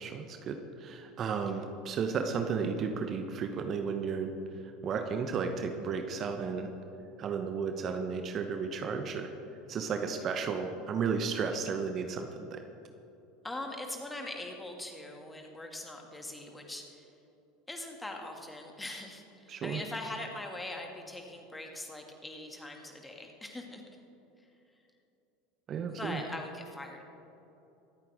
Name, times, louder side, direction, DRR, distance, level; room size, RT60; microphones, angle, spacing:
voice 1, 0.0-6.7 7.2-9.3 9.7-12.6 19.5-19.8 25.7-26.2, right 5 dB, 40° right, 6 dB, 1.0 m, -33 dB
voice 2, 13.4-17.1 17.7-23.8 24.4-24.5 25.9-27.0, left 1 dB, 10° left, 2 dB, 2.4 m, -42 dB
24.0 x 9.0 x 3.7 m, 3.0 s
hypercardioid pair, 75°, 0 cm